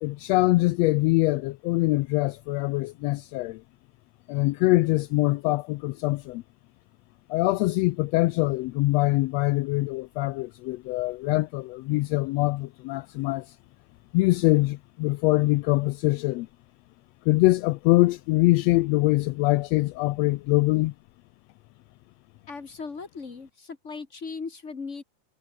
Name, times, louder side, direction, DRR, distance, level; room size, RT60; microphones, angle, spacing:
voice 1, 0.0-3.6 4.3-6.4 7.3-13.4 14.1-16.5 17.3-20.9, left 20 dB, 80° left, 1.5 m, -23 dB
voice 2, 22.5-25.0, left 4 dB, 35° left, 1.4 m, -38 dB
omnidirectional pair, 3.4 m